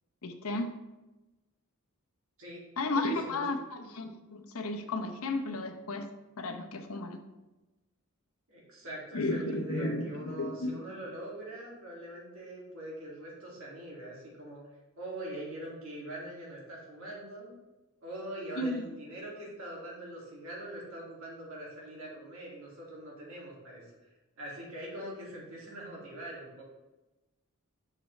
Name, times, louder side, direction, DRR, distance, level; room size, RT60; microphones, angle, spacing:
voice 1, 0.2-0.7 2.8-6.1 6.4-7.2 9.1-10.8 18.6-18.9, left 2 dB, 75° left, 6 dB, 0.8 m, -33 dB
voice 2, 3.0-3.4 8.5-14.6 15.0-17.6 18.0-23.8 24.4-26.6, right 1 dB, 65° right, -4 dB, 2.4 m, -43 dB
7.2 x 6.0 x 3.2 m, 1.1 s
head